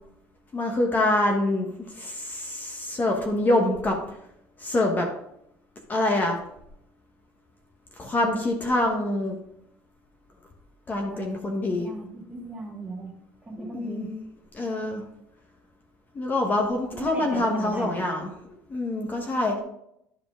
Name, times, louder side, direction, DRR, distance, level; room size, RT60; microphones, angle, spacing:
voice 1, 0.5-4.2 4.6-5.1 5.9-6.4 8.0-9.4 10.9-11.9 13.6-14.2 14.5-15.0 16.1-19.6, left 1 dB, 25° left, 2 dB, 1.3 m, -25 dB
voice 2, 11.7-13.1 13.4-14.1 16.9-18.0, right 3 dB, 20° right, -1 dB, 2.0 m, -37 dB
11.5 x 4.9 x 3.6 m, 0.77 s
cardioid pair, 125°, 7 cm